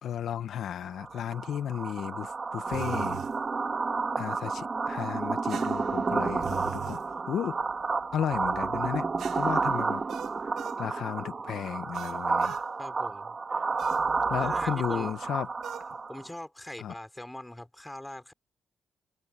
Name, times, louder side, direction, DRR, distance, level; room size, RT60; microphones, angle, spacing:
voice 1, 0.0-3.2 4.2-7.0 7.3-7.6 8.1-9.1 9.3-10.0 10.8-12.6 13.6-13.7 14.3-15.5 16.8-16.9, left 9 dB, 75° left, 1.2 m, -34 dB
sound 1, 0.9-16.3, right 4 dB, 30° right, 1.8 m, -31 dB
sound 2, 2.7-3.4 5.5-7.0 9.2-10.8 11.9-12.7 13.8-14.1 15.6-15.9, right 11 dB, 85° right, 1.5 m, -42 dB
voice 2, 12.8-13.4 14.4-15.1 16.1-18.3, left 1 dB, 5° left, 4.6 m, -42 dB
cardioid pair, 120°, 0 cm